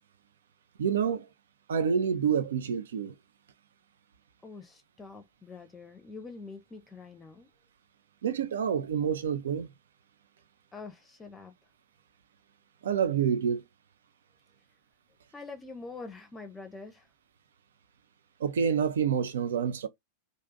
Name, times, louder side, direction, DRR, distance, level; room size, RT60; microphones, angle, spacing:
voice 1, 0.8-1.3 1.7-3.1 8.2-9.7 12.8-13.6 18.4-19.9, right 7 dB, 65° right, 0.4 m, -28 dB
voice 2, 4.4-7.5 10.7-11.5 15.3-17.1, left 4 dB, 15° left, 0.6 m, -45 dB
2.6 x 2.4 x 3.8 m
figure-of-eight pair, 90°, 0 cm